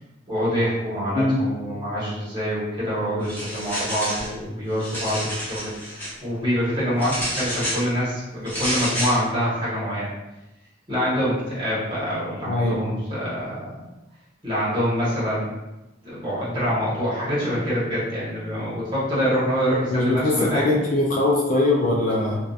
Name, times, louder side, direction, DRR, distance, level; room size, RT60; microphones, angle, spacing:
voice 1, 0.3-5.7 6.2-10.1 10.9-13.7 14.4-15.5 16.0-20.6, equal, 25° right, -9 dB, 0.9 m, -25 dB
sound 1, 3.2-4.3 4.7-6.1 7.0-7.9 8.5-9.2, equal, 10° left, 0.6 m, -29 dB
voice 2, 12.5-12.8 19.9-22.4, left 2 dB, 40° left, -2 dB, 0.3 m, -21 dB
2.6 x 2.3 x 2.3 m, 1.0 s
head